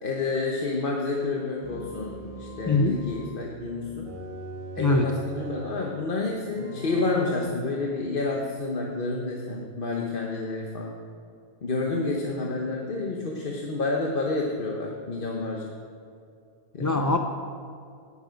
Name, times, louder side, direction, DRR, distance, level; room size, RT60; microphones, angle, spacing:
voice 1, 0.0-4.1 4.7-10.9 11.6-15.7 16.7-17.1, left 3 dB, 55° left, -1 dB, 1.2 m, -29 dB
sound 1, 1.6-3.4 4.0-5.9 6.6-7.4, right 1 dB, 50° right, 2.5 m, -40 dB
voice 2, 2.7-3.0 4.8-5.1 16.8-17.2, left 2 dB, 25° left, 4 dB, 0.4 m, -22 dB
17.5 x 7.1 x 5.2 m, 2.4 s
omnidirectional pair, 1.1 m